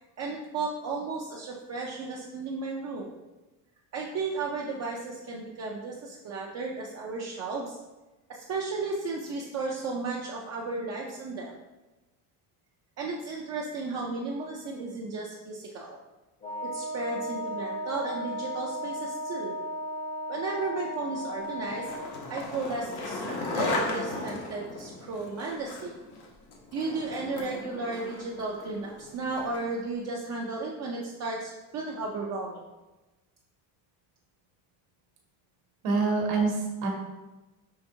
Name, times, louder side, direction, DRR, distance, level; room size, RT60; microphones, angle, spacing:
voice 1, 0.0-3.1 3.9-7.8 8.3-11.6 13.0-16.0 16.6-19.5 20.3-26.0 26.7-32.7, right 3 dB, 45° right, -2 dB, 0.5 m, -34 dB
Wind instrument woodwind instrument, 16.4-22.1, equal, 20° left, 0.6 m, -35 dB
Skateboard, 21.4-29.8, left 2 dB, 85° left, 1.1 m, -36 dB
voice 2, 35.8-36.9, right 4 dB, 75° right, 0 dB, 1.2 m, -26 dB
5.7 x 3.4 x 2.7 m, 1.1 s
cardioid pair, 165°, 38 cm